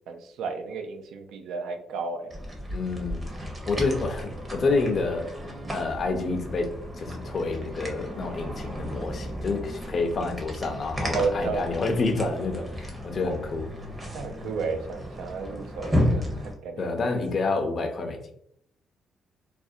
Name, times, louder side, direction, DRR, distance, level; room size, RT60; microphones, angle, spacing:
voice 1, 0.1-2.3 11.1-11.8 14.1-16.9, right 4 dB, 80° right, 6 dB, 0.3 m, -32 dB
sound 1, 2.3-16.5, equal, 20° right, 0.7 m, -33 dB
voice 2, 2.7-3.3 3.7-5.3 5.7-13.7 16.8-18.3, left 3 dB, 50° left, 5 dB, 0.4 m, -28 dB
2.4 x 2.0 x 2.6 m, 0.70 s
cardioid pair, 90°, 0 cm